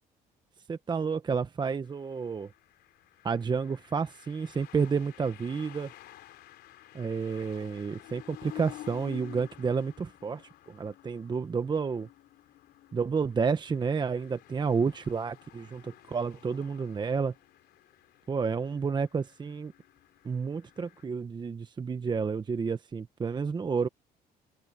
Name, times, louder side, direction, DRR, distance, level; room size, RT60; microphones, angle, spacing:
voice 1, 0.7-2.5 3.2-5.9 6.9-12.1 12.9-17.3 18.3-19.7 20.2-23.9, right 5 dB, 25° right, 0.9 m, -30 dB
sound 1, 1.8-21.0, left 15 dB, 75° left, 3.5 m, -51 dB
open air
cardioid pair, 110°, 17 cm